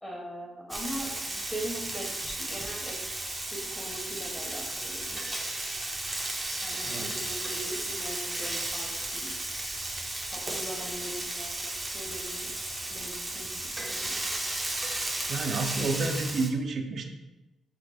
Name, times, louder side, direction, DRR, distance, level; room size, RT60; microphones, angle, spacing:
voice 1, 0.0-3.0 3.5-5.3 6.6-9.3 10.3-12.5 12.9-14.3, right 1 dB, 5° left, -2 dB, 1.4 m, -41 dB
Frying (food), 0.7-16.5, right 1 dB, 20° right, 0.7 m, -34 dB
voice 2, 15.3-17.0, right 3 dB, 55° right, 5 dB, 0.6 m, -30 dB
6.2 x 3.0 x 2.4 m, 1.0 s
cardioid pair, 90°, 0 cm